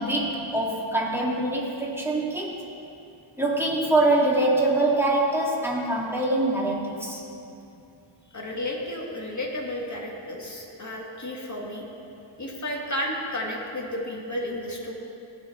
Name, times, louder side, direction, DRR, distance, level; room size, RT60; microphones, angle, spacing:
voice 1, 0.0-2.6 3.4-7.2, right 2 dB, 5° right, -4 dB, 2.5 m, -24 dB
voice 2, 8.3-11.8 12.4-14.9, left 1 dB, 35° left, -1 dB, 2.2 m, -32 dB
17.5 x 5.9 x 4.6 m, 2.7 s
cardioid pair, 50°, 50 cm